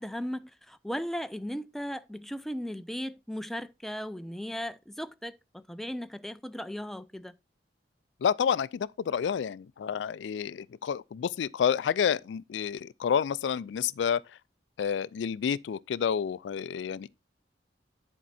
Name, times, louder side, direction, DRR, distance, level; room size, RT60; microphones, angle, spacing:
voice 1, 0.0-7.3, equal, ahead, 0.3 m, -37 dB
voice 2, 8.2-14.2 14.8-17.1, left 7 dB, 80° left, 0.3 m, -29 dB
10.0 x 4.5 x 4.0 m
head